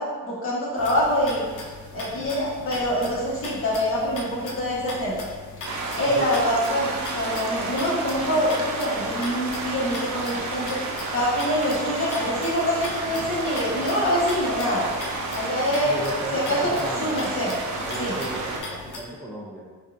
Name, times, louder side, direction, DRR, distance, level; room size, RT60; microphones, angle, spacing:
voice 1, 0.0-1.4 1.9-5.1 6.0-10.8 11.1-14.9 15.3-15.9 16.3-16.7 17.0-17.5 18.0-18.1, equal, 40° left, -7 dB, 1.1 m, -25 dB
sound 1, 0.8-19.0, left 3 dB, 65° left, 0.7 m, -39 dB
sound 2, 5.6-18.6, right 3 dB, 55° right, 0.7 m, -31 dB
voice 2, 6.1-6.4 15.8-17.4 17.8-19.6, right 1 dB, ahead, -5 dB, 0.4 m, -35 dB
5.2 x 2.3 x 2.5 m, 1.5 s
wide cardioid pair, 125°, 34 cm